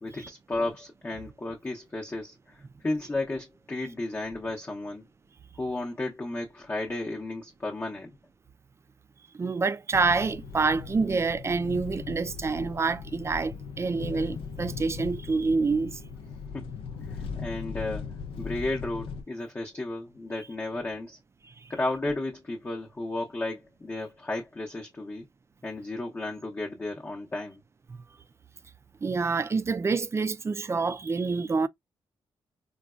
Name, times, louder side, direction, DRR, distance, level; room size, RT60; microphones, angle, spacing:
voice 1, 0.0-5.1 5.6-8.1 16.5-16.7 17.1-18.1 18.4-21.2 21.7-25.3 25.6-27.6, left 2 dB, 25° left, 0.7 m, -33 dB
voice 2, 9.3-16.0 21.6-21.7 27.9-28.0 29.0-31.7, right 4 dB, 30° right, 0.3 m, -27 dB
sound 1, 9.9-19.2, left 5 dB, 85° left, 0.6 m, -39 dB
3.8 x 2.2 x 2.3 m
cardioid pair, 90°, 9 cm